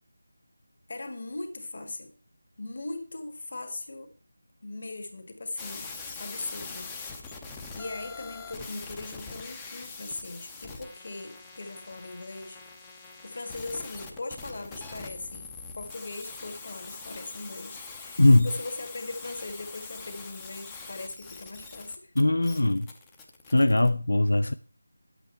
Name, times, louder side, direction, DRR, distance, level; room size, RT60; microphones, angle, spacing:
voice 1, 0.9-2.1 2.6-4.2 4.6-5.9 6.2-6.9 7.7-12.6 13.2-22.1, left 2 dB, 45° left, 1.6 m, -39 dB
sound 1, 5.6-23.9, left 4 dB, 10° left, 0.6 m, -43 dB
voice 2, 22.2-22.9 23.5-24.5, left 2 dB, 80° left, 0.4 m, -20 dB
9.2 x 8.1 x 4.3 m
figure-of-eight pair, 175°, 0 cm